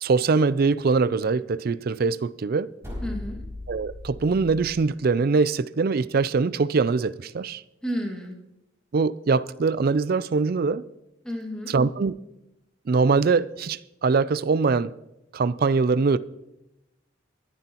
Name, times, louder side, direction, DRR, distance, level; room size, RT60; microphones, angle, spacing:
voice 1, 0.0-2.7 3.7-7.6 8.9-10.8 11.7-12.1 12.9-14.9 15.3-16.2, right 4 dB, 50° right, 0.4 m, -23 dB
sound 1, 2.8-4.9, left 2 dB, 15° right, 5.2 m, -37 dB
voice 2, 3.0-3.4 7.8-8.4 11.2-11.7, equal, 5° left, 2.0 m, -31 dB
23.0 x 10.5 x 3.0 m
head